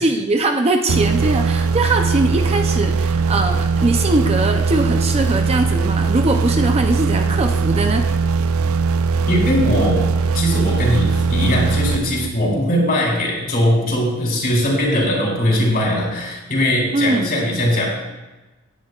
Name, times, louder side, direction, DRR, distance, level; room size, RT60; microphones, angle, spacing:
voice 1, 0.0-8.0 16.9-17.3, right 2 dB, 30° right, 5 dB, 0.6 m, -21 dB
sound 1, 0.9-12.6, right 4 dB, 70° right, 0.4 m, -19 dB
voice 2, 9.3-10.1 10.3-18.0, left 1 dB, 45° left, -3 dB, 3.9 m, -20 dB
17.0 x 10.5 x 2.4 m, 1.1 s
head